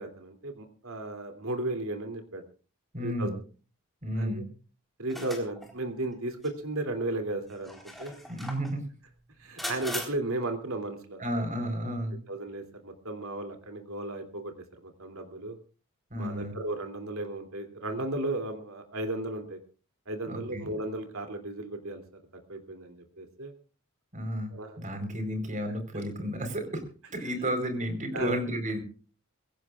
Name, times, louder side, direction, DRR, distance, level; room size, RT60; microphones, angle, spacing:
voice 1, 0.0-2.4 3.0-3.3 4.2-4.4 5.0-8.1 9.4-11.2 12.3-14.5 14.8-15.6 16.2-19.6 20.1-22.0 22.5-23.5 24.5-24.8 28.1-28.4, right 2 dB, 75° right, 6 dB, 3.0 m, -35 dB
voice 2, 2.9-3.3 4.0-4.5 8.3-8.8 9.6-9.7 11.2-12.2 16.1-16.5 20.3-20.7 24.1-24.5 24.8-26.8 27.1-28.8, equal, 35° right, 6 dB, 4.3 m, -32 dB
sound 1, 5.1-5.7 6.4-6.5 7.5-8.7 9.6-10.1, left 1 dB, ahead, 4.0 m, -38 dB
23.0 x 16.5 x 2.5 m, 0.38 s
head